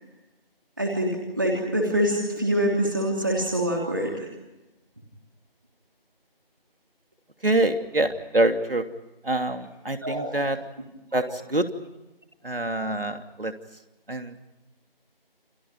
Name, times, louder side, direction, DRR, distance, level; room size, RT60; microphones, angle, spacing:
voice 1, 0.8-4.3 10.0-10.4 11.1-11.3, right 1 dB, 20° right, 0 dB, 3.1 m, -25 dB
voice 2, 7.4-8.8 9.2-10.6 11.1-11.2 11.5-11.7 12.4-13.5 14.1-14.3, right 1 dB, 65° right, 7 dB, 3.1 m, -25 dB
29.5 x 27.5 x 5.2 m, 1.0 s
figure-of-eight pair, 175°, 30 cm